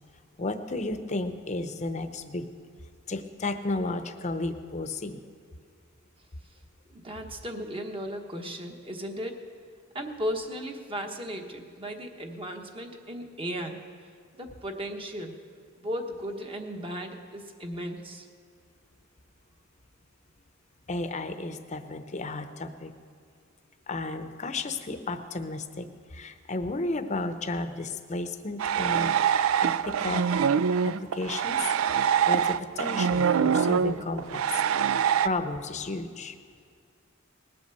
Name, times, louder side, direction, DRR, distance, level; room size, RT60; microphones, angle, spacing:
voice 1, 0.4-2.5 3.1-5.2 20.9-22.9 23.9-30.2 30.8-34.6 35.2-36.4, left 2 dB, 35° left, 9 dB, 0.8 m, -33 dB
voice 2, 6.9-9.4 9.9-13.8 14.4-15.4 15.8-18.3, equal, 25° right, 3 dB, 1.2 m, -36 dB
sound 1, 28.6-35.3, right 7 dB, 75° right, 0.4 m, -24 dB
19.0 x 8.3 x 6.9 m, 2.2 s
head